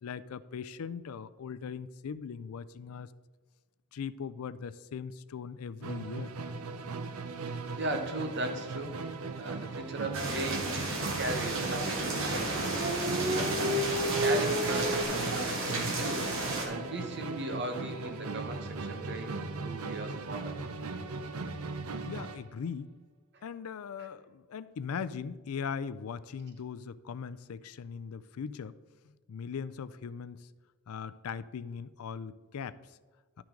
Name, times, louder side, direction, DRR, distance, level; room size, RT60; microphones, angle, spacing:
voice 1, 0.0-3.1 3.9-6.4 9.6-9.7 22.1-22.9 23.4-28.7 29.3-30.5 30.9-32.8, left 6 dB, 85° left, 15 dB, 0.4 m, -39 dB
Musical instrument, 5.8-22.5, right 3 dB, 85° right, 0.6 m, -38 dB
voice 2, 7.4-9.0 9.4-12.6 13.2-20.6 23.3-23.4 24.0-24.1, right 1 dB, 50° right, 5 dB, 1.1 m, -38 dB
sound 1, 10.1-16.7, right 2 dB, 65° right, 1.8 m, -32 dB
Dog, 11.6-15.0, equal, 30° right, 0.9 m, -32 dB
11.5 x 6.0 x 3.7 m, 1.4 s
head